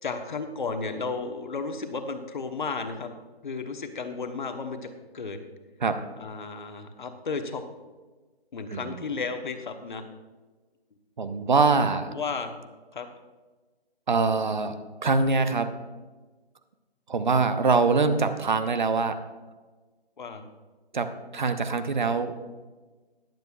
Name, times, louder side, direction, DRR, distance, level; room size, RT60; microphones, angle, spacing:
voice 1, 0.0-3.1 3.4-5.4 6.2-7.6 8.5-10.0 12.1-12.5 12.9-13.1 20.2-20.4, left 4 dB, 50° left, 6 dB, 1.1 m, -33 dB
voice 2, 8.7-9.0 11.2-12.1 14.1-14.7 15.0-15.7 17.1-19.2 20.9-22.4, right 4 dB, 50° right, 10 dB, 0.8 m, -24 dB
21.0 x 7.8 x 2.4 m, 1.3 s
hypercardioid pair, 165°, 31 cm